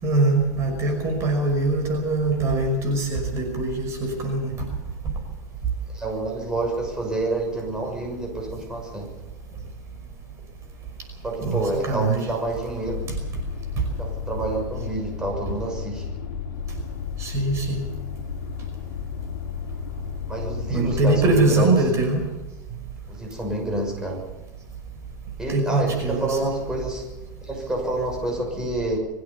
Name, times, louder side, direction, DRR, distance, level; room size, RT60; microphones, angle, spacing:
voice 1, 0.0-4.5 11.4-12.3 17.2-17.8 20.7-22.2 25.5-26.5, right 2 dB, 30° right, 3 dB, 5.7 m, -22 dB
voice 2, 5.9-9.1 11.2-13.0 14.0-16.0 20.3-21.7 23.1-24.2 25.4-27.0 27.4-29.0, right 2 dB, 5° right, 0 dB, 6.4 m, -28 dB
sound 1, 12.9-21.4, left 8 dB, 70° left, 2.5 m, -33 dB
23.5 x 16.0 x 7.0 m, 1.1 s
supercardioid pair, 140°, 10 cm